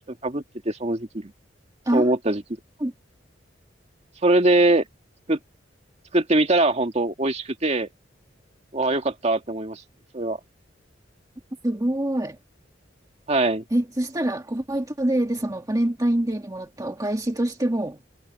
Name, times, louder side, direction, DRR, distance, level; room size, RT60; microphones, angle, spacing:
voice 1, 0.2-1.3 1.9-2.4 4.2-4.8 5.3-5.4 6.1-7.9 8.7-9.8 10.1-10.4 13.3-13.6, right 2 dB, 35° right, 1.9 m, -22 dB
voice 2, 11.6-12.4 13.7-18.0, right 1 dB, 20° right, 1.5 m, -25 dB
head